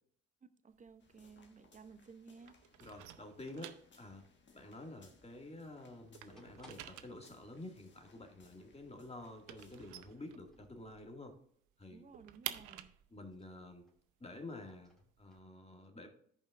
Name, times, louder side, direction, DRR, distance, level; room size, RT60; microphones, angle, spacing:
voice 1, 0.4-2.6 11.9-12.9, right 5 dB, 25° right, 0.7 m, -56 dB
sound 1, 0.7-2.2 2.4-5.6 5.9-11.0 11.3-11.4 11.7-15.4, right 13 dB, 65° right, 0.7 m, -50 dB
sound 2, 1.0-10.0, left 3 dB, 35° left, 1.5 m, -67 dB
voice 2, 2.8-4.3 4.5-11.4 11.8-12.0 13.1-13.8 14.2-16.1, left 2 dB, 20° left, 2.1 m, -50 dB
sound 3, 6.3-7.2 7.6-7.7 7.9-8.0 8.8-9.0 10.3-11.4 12.6-14.0 14.3-15.4, equal, ahead, 2.4 m, -67 dB
14.5 x 5.2 x 2.5 m
hypercardioid pair, 60°, 33 cm